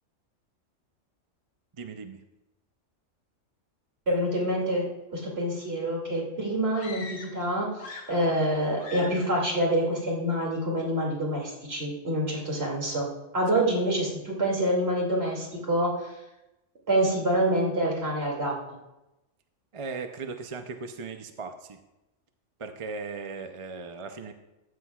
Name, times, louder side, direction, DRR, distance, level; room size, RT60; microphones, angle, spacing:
voice 1, 1.8-2.2 13.5-13.7 19.7-21.8 22.6-24.3, right 4 dB, 40° right, 7 dB, 0.5 m, -37 dB
voice 2, 4.1-4.8 5.1-16.1 16.9-18.5, right 1 dB, 55° right, -3 dB, 2.8 m, -27 dB
sound 1, 6.7-7.5 7.7-8.5 8.8-9.3, left 4 dB, 90° left, 1.7 m, -42 dB
14.5 x 12.5 x 2.4 m, 0.97 s
omnidirectional pair, 1.3 m